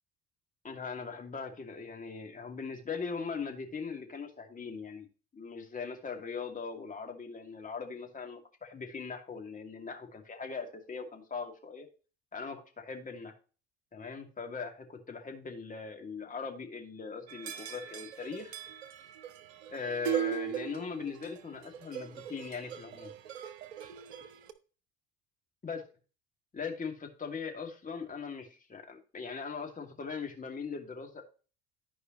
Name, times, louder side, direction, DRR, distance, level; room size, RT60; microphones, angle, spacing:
voice 1, 0.6-5.1 5.3-11.9 12.3-13.3 13.9-18.6 19.7-23.1 25.6-25.8 26.5-31.2, left 5 dB, 25° left, 3 dB, 2.3 m, -40 dB
sound 1, 17.3-24.5, right 10 dB, 80° right, 0.8 m, -39 dB
13.5 x 4.8 x 3.0 m, 0.35 s
hypercardioid pair, 65°, 32 cm